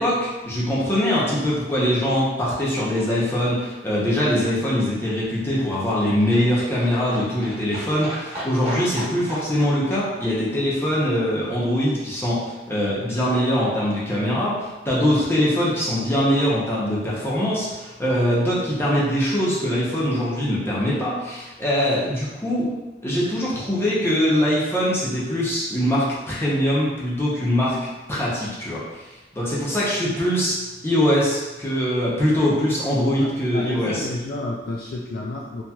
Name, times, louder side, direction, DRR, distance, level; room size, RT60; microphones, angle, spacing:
voice 1, 0.0-22.7 23.0-29.0 29.3-30.6 30.8-34.0, equal, 15° left, -7 dB, 0.7 m, -22 dB
Livestock farm animals working animals, 4.5-12.1 12.3-12.4 12.7-12.8 13.0-13.1 13.3-13.4 13.6-13.7 13.9-14.0 14.2-14.3 14.5-14.6, equal, 35° right, 1.1 m, -38 dB
voice 2, 33.2-35.6, left 2 dB, 55° left, -3 dB, 0.3 m, -30 dB
2.8 x 2.8 x 2.3 m, 1.1 s
head